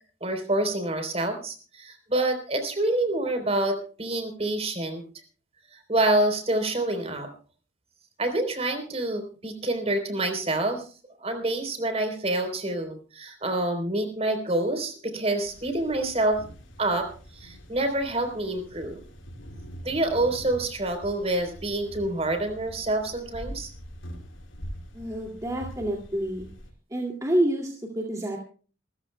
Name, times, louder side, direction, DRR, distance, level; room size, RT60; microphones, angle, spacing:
voice 1, 0.2-5.0 5.7-7.3 8.2-10.9 11.2-16.4 16.8-17.1 17.3-19.0 19.8-23.7, right 2 dB, 30° right, 7 dB, 3.6 m, -27 dB
sound 1, 15.4-26.7, equal, 85° left, 4.4 m, -44 dB
voice 2, 24.9-26.5 26.9-28.4, right 1 dB, 15° right, 0 dB, 2.3 m, -28 dB
27.5 x 14.5 x 2.2 m, 0.38 s
head